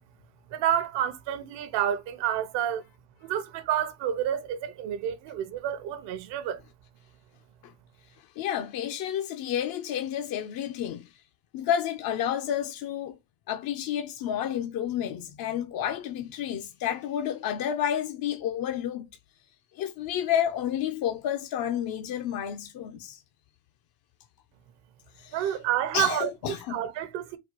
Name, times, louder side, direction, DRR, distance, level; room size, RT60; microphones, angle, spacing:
voice 1, 0.5-2.8 3.2-6.6 25.3-27.4, right 10 dB, 65° right, 0.8 m, -29 dB
voice 2, 8.4-11.1 11.5-13.2 13.5-19.1 19.8-23.2 25.2-25.6 25.9-26.8, left 10 dB, 50° left, 0.6 m, -30 dB
4.3 x 2.4 x 4.4 m
supercardioid pair, 110°, 47 cm